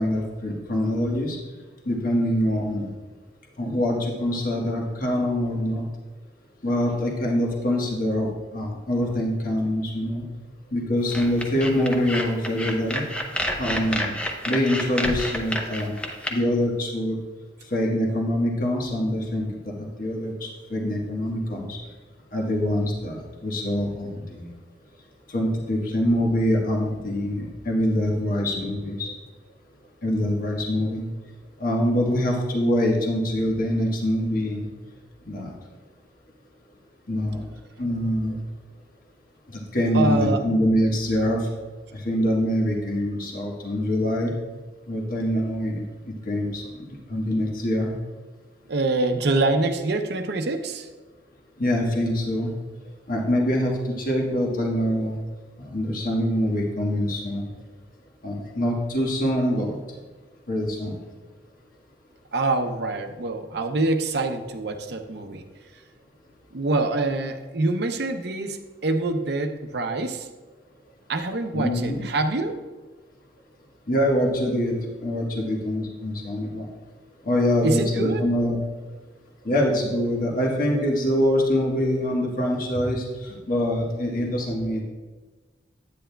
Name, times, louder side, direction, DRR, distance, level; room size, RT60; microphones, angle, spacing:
voice 1, 0.0-1.4 1.8-2.9 3.6-5.9 6.6-10.2 10.7-13.0 13.6-14.1 14.4-16.0 16.3-17.2 17.7-21.8 22.3-24.5 25.3-29.1 30.0-31.0 31.6-34.7 35.2-35.5 37.1-37.5 37.8-38.4 39.5-41.5 41.9-44.3 44.9-45.8 46.3-46.6 47.1-47.9 51.6-52.5 53.1-55.2 55.6-57.5 58.2-59.8 60.5-61.0 71.5-72.0 73.9-74.7 75.0-76.7 77.2-78.6 79.4-84.8, left 1 dB, 50° left, -1 dB, 1.3 m, -24 dB
sound 1, 11.1-16.3, left 1 dB, 5° left, 0.7 m, -29 dB
voice 2, 39.9-40.4 48.7-50.9 62.3-65.4 66.5-70.3 71.1-72.6 77.6-78.2, right 2 dB, 65° right, 6 dB, 0.6 m, -25 dB
9.9 x 8.6 x 2.3 m, 1.3 s
head